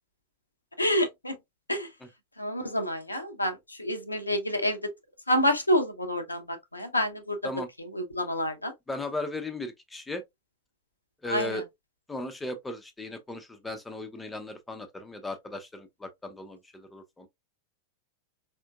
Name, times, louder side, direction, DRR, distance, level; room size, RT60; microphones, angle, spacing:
voice 1, 0.8-1.3 1.7-1.9 2.4-4.8 5.3-7.4 7.9-8.7 11.3-11.6, equal, 85° left, 0.6 m, -28 dB
voice 2, 8.9-10.2 11.2-11.6 12.1-17.3, left 2 dB, 10° left, 0.6 m, -36 dB
4.3 x 2.6 x 2.2 m
figure-of-eight pair, 90°, 0 cm